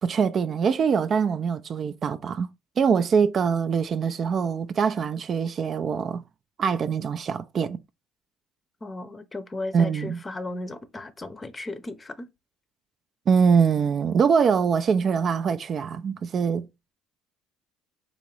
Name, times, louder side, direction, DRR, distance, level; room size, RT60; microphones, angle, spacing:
voice 1, 0.0-2.5 2.8-6.2 6.6-7.8 9.7-10.2 13.3-16.7, right 6 dB, 45° right, 0.3 m, -23 dB
voice 2, 8.8-12.3, left 2 dB, 25° left, 0.6 m, -35 dB
3.8 x 2.5 x 3.2 m
supercardioid pair, 85°, 0 cm